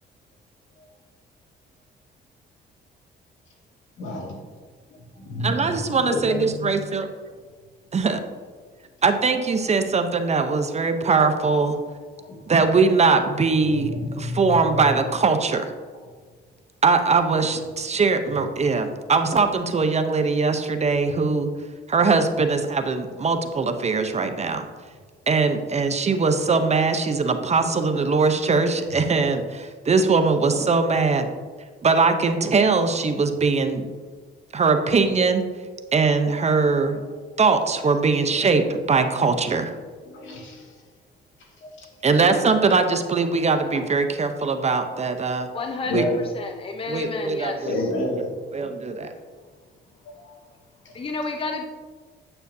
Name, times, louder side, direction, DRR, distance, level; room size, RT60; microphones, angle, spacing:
voice 1, 4.0-4.4 5.3-6.7 11.0-11.2 12.2-12.4 13.6-14.8 36.9-37.0 40.1-40.8 41.4-41.9 45.9-46.2 47.6-48.3 50.0-50.3 50.8-51.0, left 1 dB, 75° left, -1 dB, 2.1 m, -30 dB
voice 2, 5.4-7.1 7.9-8.2 9.0-11.8 12.5-15.7 16.8-21.5 21.9-24.7 25.3-31.3 31.8-33.9 34.5-35.4 35.9-37.0 37.4-39.7 42.0-45.5 45.9-46.0 46.9-47.7 48.5-49.1, right 4 dB, 35° right, 7 dB, 0.7 m, -21 dB
voice 3, 45.5-47.9 50.9-51.6, left 3 dB, 25° left, 4 dB, 0.7 m, -31 dB
9.0 x 7.9 x 2.7 m, 1.5 s
cardioid pair, 90°, 20 cm